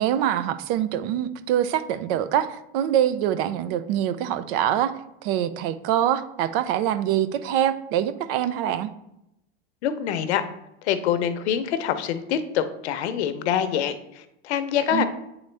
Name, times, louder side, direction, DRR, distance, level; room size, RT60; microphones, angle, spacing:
voice 1, 0.0-8.9 14.9-15.0, right 11 dB, 60° right, 12 dB, 0.6 m, -24 dB
voice 2, 9.8-10.4 10.8-15.0, left 9 dB, 80° left, 10 dB, 0.8 m, -25 dB
8.4 x 4.0 x 3.3 m, 0.85 s
supercardioid pair, 130°, 33 cm